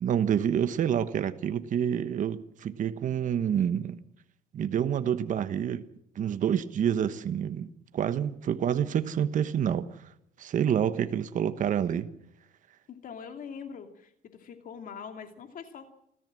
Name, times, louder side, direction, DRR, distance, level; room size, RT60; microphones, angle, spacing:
voice 1, 0.0-4.0 4.5-5.8 6.1-7.7 7.9-9.9 10.4-12.1, right 9 dB, 50° right, 11 dB, 1.2 m, -28 dB
voice 2, 12.9-15.9, left 6 dB, 55° left, 6 dB, 2.6 m, -43 dB
27.5 x 14.0 x 7.6 m, 0.77 s
cardioid pair, 110°, 17 cm